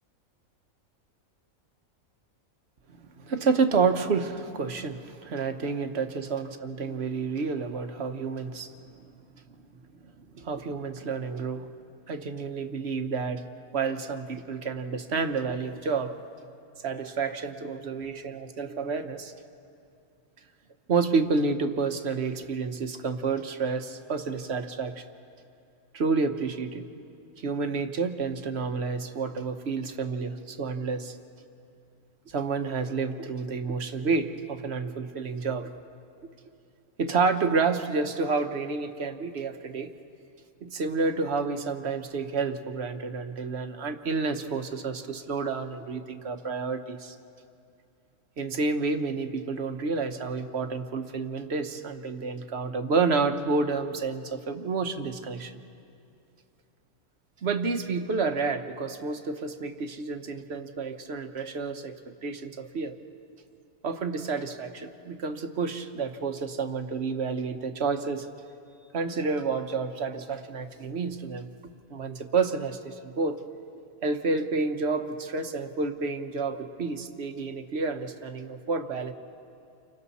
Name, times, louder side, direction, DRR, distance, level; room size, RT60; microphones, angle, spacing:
voice 1, 3.0-8.7 10.0-11.7 12.1-13.4 13.7-16.1 16.8-19.3 20.9-25.0 25.9-26.9 27.4-31.2 32.3-35.7 37.0-39.9 40.6-47.1 48.4-55.6 57.4-62.0 62.2-62.9 63.8-68.3 68.9-71.5 71.9-73.4 74.0-79.1, right 4 dB, 50° right, 7 dB, 1.2 m, -29 dB
29.5 x 25.0 x 4.2 m, 2.5 s
omnidirectional pair, 1.5 m